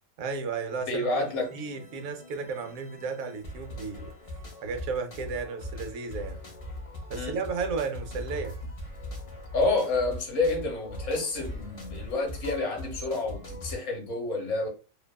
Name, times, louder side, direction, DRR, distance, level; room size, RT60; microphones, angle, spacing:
voice 1, 0.2-4.1 4.6-6.4 7.1-8.5, right 5 dB, 85° right, 1.0 m, -34 dB
voice 2, 0.9-1.5 7.1-7.4 9.5-14.7, left 3 dB, 65° left, 1.1 m, -29 dB
sound 1, 1.1-13.8, left 1 dB, 40° left, 0.5 m, -44 dB
sound 2, 4.3-13.4, left 2 dB, 55° right, 1.2 m, -42 dB
2.7 x 2.2 x 2.2 m
omnidirectional pair, 1.4 m